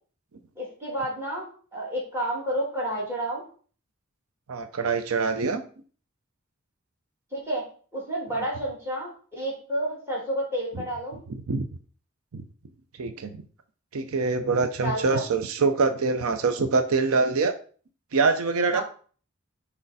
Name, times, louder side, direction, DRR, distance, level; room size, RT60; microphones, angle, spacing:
voice 1, 0.6-3.4 7.3-7.6 7.9-11.2 14.8-15.2 18.7-18.8, right 1 dB, 10° right, -3 dB, 2.9 m, -30 dB
voice 2, 4.5-5.6 8.3-8.4 10.7-10.8 11.3-11.7 12.3-12.4 13.0-13.4 13.9-17.5 18.1-18.8, right 4 dB, 85° right, 9 dB, 0.6 m, -24 dB
6.5 x 4.3 x 4.1 m, 0.42 s
head